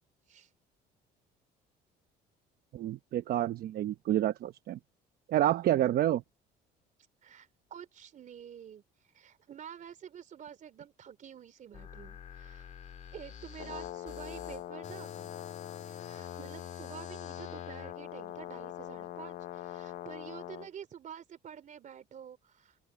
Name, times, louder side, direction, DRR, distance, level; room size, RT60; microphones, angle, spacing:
voice 1, 2.7-4.8 5.3-6.2, right 13 dB, 65° right, 0.9 m, -28 dB
voice 2, 7.2-8.8 9.1-12.7 13.1-15.3 15.9-22.8, right 8 dB, 50° right, 3.4 m, -49 dB
sound 1, 11.7-17.9, left 8 dB, 45° left, 1.8 m, -48 dB
Brass instrument, 13.5-20.7, left 13 dB, 60° left, 0.7 m, -43 dB
open air
cardioid pair, 110°, 17 cm